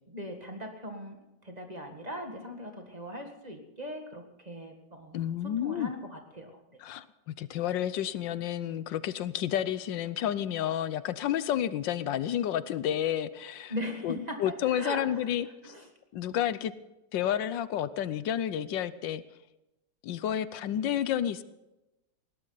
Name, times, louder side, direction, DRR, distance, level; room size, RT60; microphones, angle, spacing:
voice 1, 0.1-1.2 1.4-6.8 13.7-15.3 15.6-15.9, equal, 25° right, 4 dB, 1.8 m, -40 dB
voice 2, 5.1-5.9 6.8-13.7 14.0-15.7 16.1-16.7 17.1-19.2 20.0-21.4, left 10 dB, 80° left, 15 dB, 1.4 m, -30 dB
20.0 x 17.5 x 4.0 m, 0.97 s
omnidirectional pair, 2.0 m